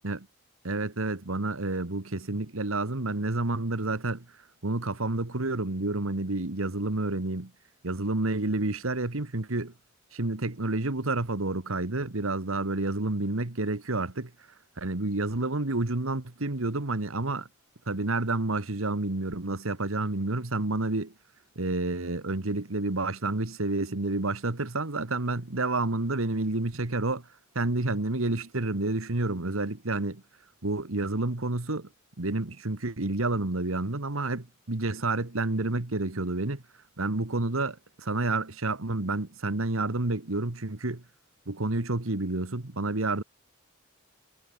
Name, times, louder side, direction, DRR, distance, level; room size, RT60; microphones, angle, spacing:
voice 1, 0.6-4.3 4.6-7.5 7.8-9.7 10.1-14.3 14.8-17.5 17.9-21.1 21.6-27.3 27.6-30.2 30.6-31.9 32.2-36.6 37.0-41.0 41.5-43.2, right 2 dB, 90° right, 1.7 m, -29 dB
head